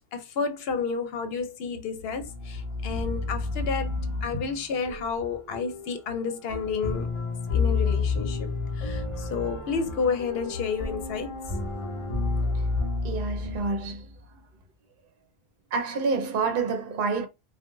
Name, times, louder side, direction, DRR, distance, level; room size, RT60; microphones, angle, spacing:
voice 1, 0.1-7.1 7.5-11.3, left 5 dB, 70° left, 0.8 m, -31 dB
sound 1, 2.1-14.2, left 4 dB, 40° left, 0.5 m, -30 dB
voice 2, 13.0-14.4 15.7-17.3, right 4 dB, 60° right, 0.8 m, -28 dB
2.3 x 2.2 x 3.0 m
omnidirectional pair, 1.1 m